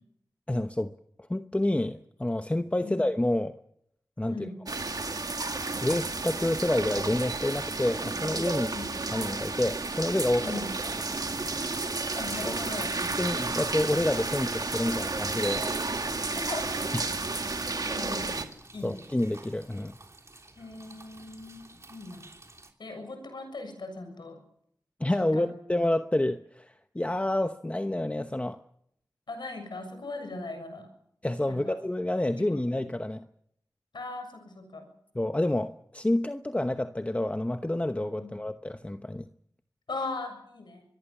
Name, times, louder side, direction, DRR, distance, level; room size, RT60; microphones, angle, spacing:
voice 1, 0.5-0.9 1.3-3.6 4.2-4.5 5.8-8.7 9.1-10.5 12.4-12.5 13.2-15.7 16.9-17.1 18.8-20.0 25.0-28.6 31.2-33.2 35.1-39.3, left 1 dB, 15° left, 1.0 m, -28 dB
voice 2, 4.3-4.6 8.7-8.9 10.4-10.7 12.2-13.0 16.3-16.9 17.4-19.0 20.6-22.3 22.8-24.4 25.2-25.5 29.3-30.9 31.5-31.8 32.4-32.6 33.9-34.9 38.2-38.3 39.9-40.8, left 3 dB, 80° left, 7.1 m, -39 dB
sound 1, 4.7-18.4, right 3 dB, 55° right, 2.0 m, -32 dB
sound 2, 6.5-22.7, right 2 dB, 40° right, 3.2 m, -52 dB
24.5 x 23.0 x 7.2 m
wide cardioid pair, 55°, 8 cm